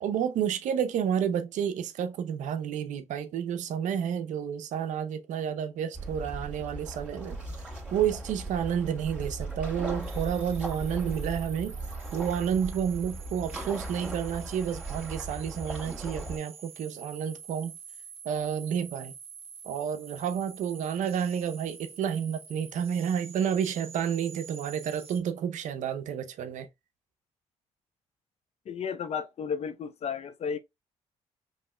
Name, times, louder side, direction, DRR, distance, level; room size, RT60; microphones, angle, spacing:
voice 1, 0.0-7.4 7.9-11.7 12.1-17.8 18.2-19.1 19.6-26.7, right 8 dB, 75° right, 0.6 m, -30 dB
sound 1, 5.9-16.4, right 2 dB, 10° right, 2.2 m, -38 dB
sound 2, 10.0-25.2, right 6 dB, 50° right, 1.1 m, -48 dB
voice 2, 28.7-30.6, left 6 dB, 55° left, 0.6 m, -33 dB
5.2 x 3.1 x 2.2 m
supercardioid pair, 65°, 13 cm